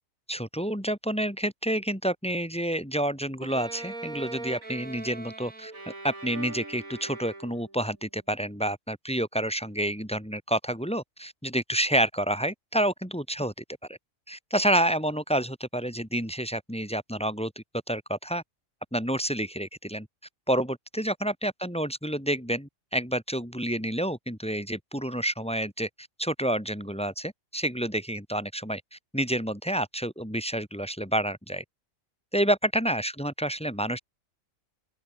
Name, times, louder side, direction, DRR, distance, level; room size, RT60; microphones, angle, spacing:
voice 1, 0.3-14.0 14.3-18.4 18.9-20.1 20.5-31.6 32.3-34.0, right 1 dB, 5° left, 3.9 m, -29 dB
Bowed string instrument, 3.4-7.8, right 2 dB, 80° right, 5.3 m, -40 dB
open air
omnidirectional pair, 1.4 m